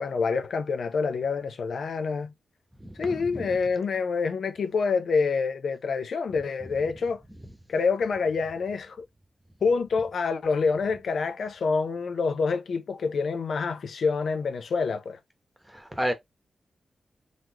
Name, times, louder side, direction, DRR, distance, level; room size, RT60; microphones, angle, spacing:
voice 1, 0.0-2.3 3.0-7.2 7.7-9.0 9.6-15.2, left 5 dB, 70° left, 0.5 m, -27 dB
voice 2, 2.8-3.6 15.7-16.1, equal, 5° right, 1.0 m, -31 dB
4.0 x 3.1 x 2.8 m
wide cardioid pair, 125°, 0 cm